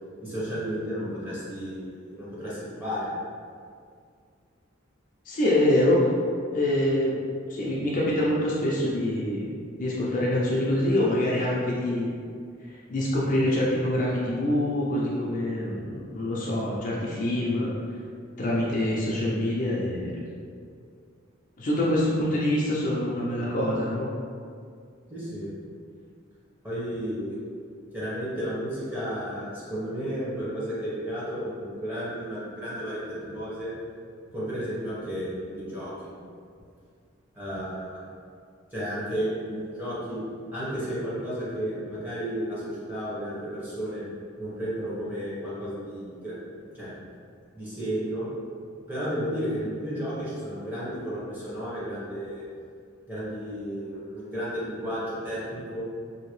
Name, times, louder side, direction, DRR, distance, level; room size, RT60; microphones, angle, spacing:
voice 1, 0.2-3.1 25.1-25.5 26.6-27.4 27.9-33.7 34.3-35.9 37.3-38.0 38.7-40.2 40.5-44.0 44.4-46.9 47.5-48.3 48.9-52.4 53.1-55.8, equal, 10° right, -10 dB, 1.0 m, -33 dB
voice 2, 5.3-6.0 6.5-7.2 7.5-9.5 9.8-12.1 12.9-17.7 18.4-20.2 21.6-24.1, left 1 dB, 40° left, -5 dB, 0.4 m, -25 dB
2.8 x 2.7 x 3.0 m, 2.2 s
head